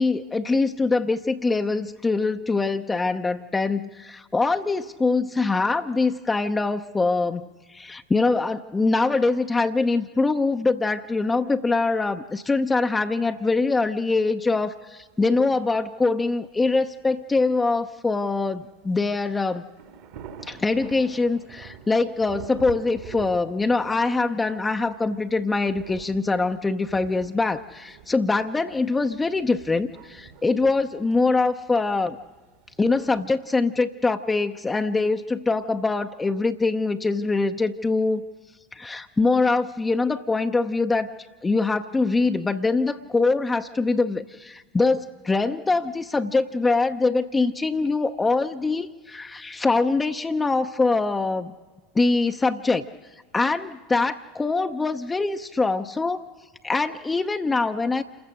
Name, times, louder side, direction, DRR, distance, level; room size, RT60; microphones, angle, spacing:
voice 1, 0.0-19.6 20.4-32.2 32.8-38.2 38.7-41.1 41.4-51.5 51.9-52.8 53.3-56.2 56.6-58.0, left 3 dB, 15° left, 7 dB, 0.7 m, -23 dB
sound 1, 14.8-14.9 15.3-15.4 16.0-16.1 16.3-16.4 17.5-17.8 18.6-19.0 19.3-19.4 19.7-33.3, right 8 dB, 55° right, 2.0 m, -46 dB
28.0 x 15.0 x 6.5 m, 1.4 s
figure-of-eight pair, 80°, 0 cm